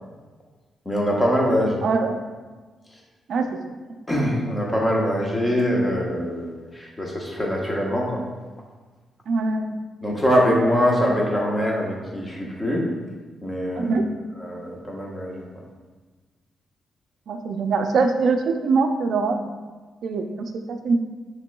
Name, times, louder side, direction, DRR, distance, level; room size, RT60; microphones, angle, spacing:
voice 1, 0.8-1.8 4.1-8.2 10.0-12.9 13.4-14.0 14.4-15.5, equal, 15° left, -2 dB, 1.0 m, -23 dB
voice 2, 1.8-2.2 3.3-3.6 9.3-9.8 13.8-14.0 17.3-19.4 20.0-21.0, right 4 dB, 70° right, 6 dB, 0.4 m, -23 dB
5.8 x 3.0 x 2.3 m, 1.3 s
cardioid pair, 85°, 0 cm